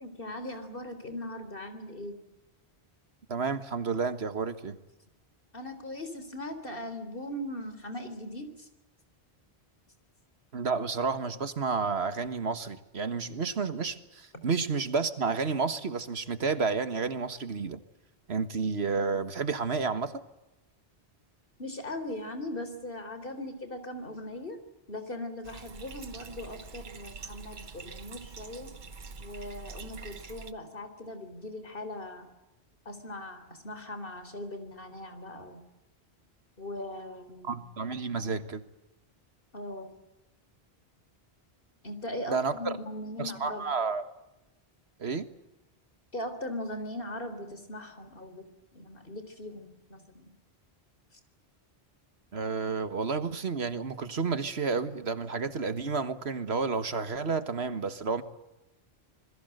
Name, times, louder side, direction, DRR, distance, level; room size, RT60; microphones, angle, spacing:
voice 1, 0.0-2.2 5.5-8.7 21.6-24.6 24.9-28.7 29.2-32.4 32.9-35.6 36.6-37.7 38.1-38.3 39.5-39.9 41.8-43.7 46.1-48.5 48.7-50.3, left 1 dB, 55° left, 9 dB, 4.0 m, -39 dB
voice 2, 3.3-4.8 10.5-17.8 18.3-20.2 37.4-38.6 42.3-42.8 43.2-44.0 45.0-45.3 52.3-58.2, right 4 dB, 75° right, 11 dB, 1.8 m, -31 dB
Bathtub (filling or washing), 25.4-30.5, right 4 dB, 50° right, 1.2 m, -45 dB
27.0 x 21.0 x 8.0 m, 0.95 s
omnidirectional pair, 1.1 m